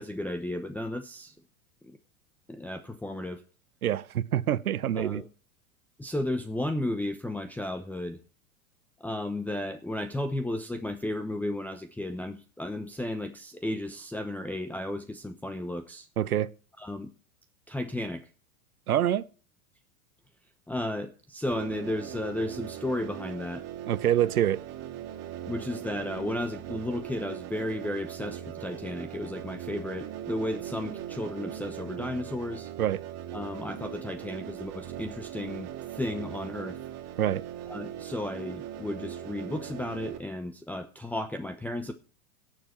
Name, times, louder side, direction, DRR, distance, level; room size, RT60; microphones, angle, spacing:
voice 1, 0.0-1.3 1.8-2.0 2.5-3.4 5.0-5.3 6.0-8.2 9.0-16.1 16.8-17.1 17.7-18.3 20.7-23.6 25.4-32.7 33.3-36.8 37.7-41.9, left 1 dB, 5° left, 0.9 m, -34 dB
voice 2, 3.8-5.2 16.2-16.5 18.9-19.2 23.9-24.6 32.8-33.0 37.2-37.4, right 11 dB, 85° right, 0.8 m, -26 dB
sound 1, 21.5-40.2, right 11 dB, 35° right, 2.4 m, -40 dB
18.0 x 7.1 x 4.3 m
hypercardioid pair, 100°, 43 cm